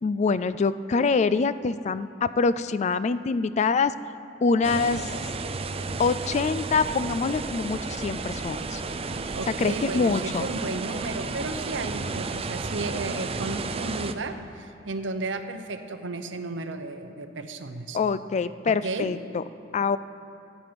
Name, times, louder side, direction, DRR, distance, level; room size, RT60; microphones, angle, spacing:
voice 1, 0.0-3.9 4.4-5.1 6.0-8.8 9.6-10.5 17.9-19.4 19.7-20.0, left 4 dB, 40° left, 14 dB, 0.3 m, -25 dB
sound 1, 4.6-14.1, right 3 dB, 30° right, 0.5 m, -32 dB
voice 2, 9.3-18.0 18.8-19.1, right 3 dB, 75° right, 8 dB, 0.8 m, -33 dB
15.0 x 9.3 x 5.2 m, 2.6 s
head